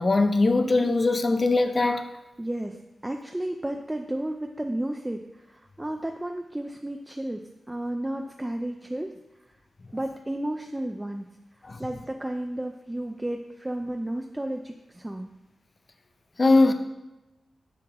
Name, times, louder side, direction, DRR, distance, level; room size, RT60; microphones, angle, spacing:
voice 1, 0.0-2.1 11.6-11.8 16.4-16.7, left 3 dB, 35° left, 7 dB, 0.5 m, -21 dB
voice 2, 2.4-2.7 3.0-5.2 5.8-7.4 7.7-9.1 9.9-11.3 11.8-15.3, right 1 dB, 15° right, 4 dB, 0.4 m, -32 dB
7.1 x 6.3 x 3.0 m, 1.0 s
wide cardioid pair, 90°, 0 cm